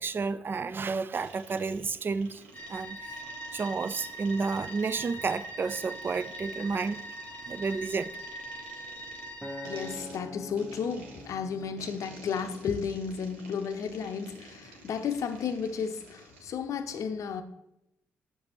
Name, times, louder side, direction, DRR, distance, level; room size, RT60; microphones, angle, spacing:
voice 1, 0.0-2.4 2.7-3.2 3.5-7.0 7.5-8.1, right 4 dB, 35° right, 0.4 m, -31 dB
sound 1, 1.1-16.5, right 3 dB, 85° right, 0.6 m, -52 dB
sound 2, 2.5-9.9, right 1 dB, 25° left, 1.0 m, -42 dB
Acoustic guitar, 9.4-13.8 14.4-14.6, left 1 dB, ahead, 1.0 m, -46 dB
voice 2, 9.6-17.4, left 6 dB, 60° left, 0.6 m, -33 dB
7.7 x 6.6 x 2.9 m
hypercardioid pair, 40°, 6 cm